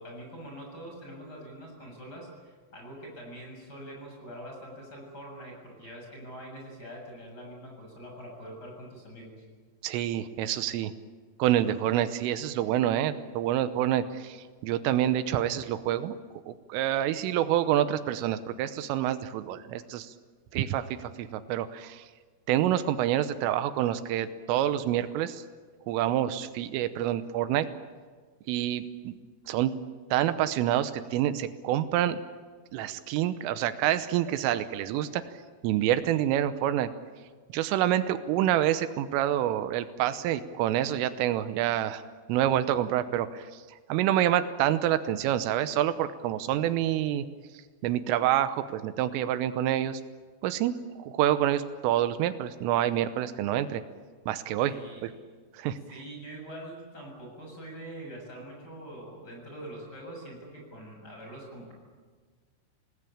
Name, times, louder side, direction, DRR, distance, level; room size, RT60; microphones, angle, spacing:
voice 1, 0.0-9.4 54.6-55.0 55.9-61.7, right 1 dB, 20° left, 0 dB, 7.7 m, -44 dB
voice 2, 9.8-10.9 11.4-16.2 16.5-20.1 20.5-22.1 22.5-25.4 25.9-27.7 28.5-29.2 29.5-29.7 30.1-32.2 32.7-35.2 35.6-36.9 37.5-42.0 42.3-43.6 43.9-47.2 47.8-50.0 50.4-53.8 54.3-54.7 55.0-55.1 55.5-55.8, right 12 dB, 85° right, 11 dB, 3.5 m, -27 dB
28.5 x 19.0 x 8.7 m, 1.5 s
omnidirectional pair, 5.7 m